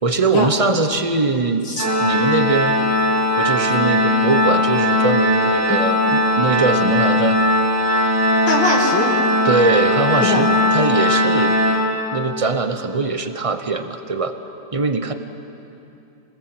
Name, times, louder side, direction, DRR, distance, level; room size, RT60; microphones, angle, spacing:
voice 1, 0.0-1.7 2.0-2.8 3.4-7.4 9.4-11.6 12.1-14.3 14.7-15.1, right 3 dB, 30° right, 8 dB, 0.6 m, -21 dB
Organ, 1.8-12.5, left 1 dB, 10° right, 1.4 m, -18 dB
voice 2, 8.5-9.1 10.2-10.5, left 3 dB, 75° left, -2 dB, 3.2 m, -21 dB
26.5 x 19.5 x 7.9 m, 2.8 s
omnidirectional pair, 2.1 m